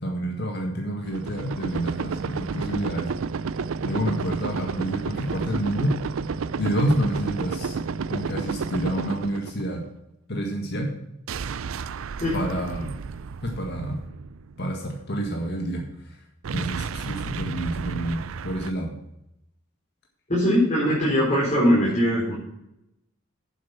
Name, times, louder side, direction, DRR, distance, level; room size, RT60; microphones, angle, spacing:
voice 1, 0.0-3.1 3.8-6.0 6.6-7.8 8.1-9.8 10.3-10.9 12.3-12.9 13.4-14.0 14.6-16.2 16.5-18.9, right 1 dB, 55° left, 1 dB, 1.8 m, -28 dB
sound 1, 1.1-9.9 11.3-14.6 16.4-18.7, right 5 dB, 75° right, 0.5 m, -31 dB
voice 2, 20.3-22.3, equal, 40° left, -7 dB, 4.3 m, -21 dB
9.3 x 7.8 x 6.0 m, 0.84 s
head